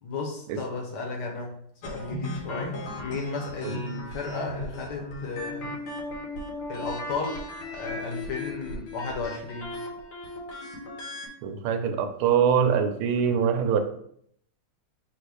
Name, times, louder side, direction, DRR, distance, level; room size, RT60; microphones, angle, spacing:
voice 1, 0.0-1.5 1.8-5.7 6.7-7.4 7.7-9.7, left 4 dB, 65° left, 1 dB, 1.3 m, -34 dB
sound 1, 1.8-11.3, left 1 dB, 90° left, 1.9 m, -37 dB
voice 2, 11.4-13.8, right 7 dB, 85° right, 7 dB, 1.5 m, -23 dB
4.1 x 2.6 x 4.7 m, 0.67 s
omnidirectional pair, 2.3 m